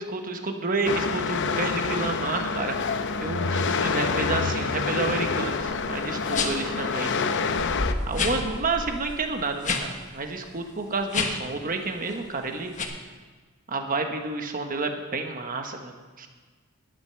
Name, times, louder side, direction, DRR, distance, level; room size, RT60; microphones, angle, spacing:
voice 1, 0.0-7.5 8.1-12.7 13.7-16.3, right 3 dB, 40° right, 5 dB, 1.2 m, -30 dB
sound 1, 0.8-7.9, left 5 dB, 55° left, 0.7 m, -27 dB
sound 2, 1.9-2.8 3.2-8.5, left 2 dB, 85° left, 0.7 m, -38 dB
sound 3, 5.6-5.8 6.3-6.7 7.2-7.3 7.6-9.9 10.2-10.3 11.0-11.5 12.0-12.3 12.8-12.9, left 3 dB, 35° left, 1.3 m, -29 dB
12.0 x 9.0 x 6.9 m, 1.4 s
head